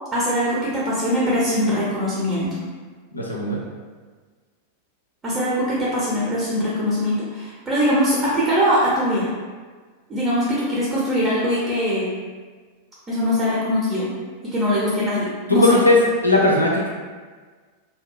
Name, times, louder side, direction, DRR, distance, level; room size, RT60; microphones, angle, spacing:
voice 1, 0.1-2.6 5.2-9.3 10.1-12.1 13.1-14.1 14.4-15.8, equal, 20° right, -8 dB, 0.6 m, -22 dB
voice 2, 3.1-3.6 15.5-16.0 16.2-16.9, left 2 dB, 85° left, -2 dB, 0.4 m, -17 dB
2.7 x 2.2 x 2.3 m, 1.5 s
figure-of-eight pair, 90°, 0 cm